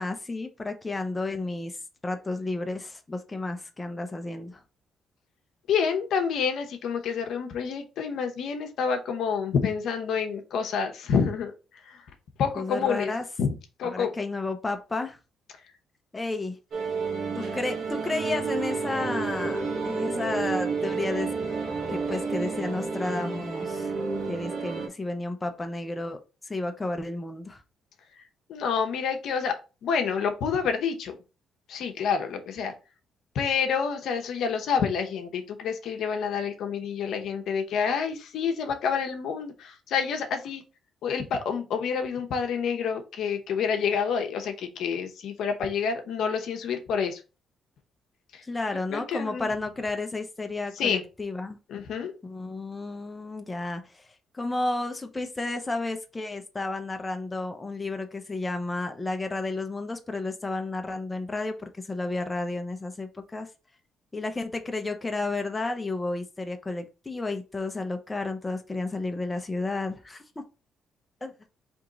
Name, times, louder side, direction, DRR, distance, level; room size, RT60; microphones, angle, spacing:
voice 1, 0.0-1.8 2.0-4.6 12.6-13.2 13.8-15.2 16.1-16.6 17.4-21.3 21.9-23.9 24.3-27.6 48.4-51.6 52.2-54.1 54.3-63.5 64.1-70.2 71.2-71.3, left 2 dB, 20° left, 6 dB, 0.6 m, -32 dB
voice 2, 5.7-12.0 12.4-13.1 13.4-13.5 13.8-14.1 28.2-28.3 28.5-31.2 31.7-32.7 33.3-40.6 41.0-47.2 48.3-48.4 48.9-49.5 50.8-51.0 51.7-52.1, left 6 dB, 75° left, 6 dB, 0.7 m, -28 dB
sound 1, 16.7-24.9, right 4 dB, 70° right, 1.3 m, -30 dB
3.6 x 2.9 x 3.8 m, 0.31 s
cardioid pair, 90°, 0 cm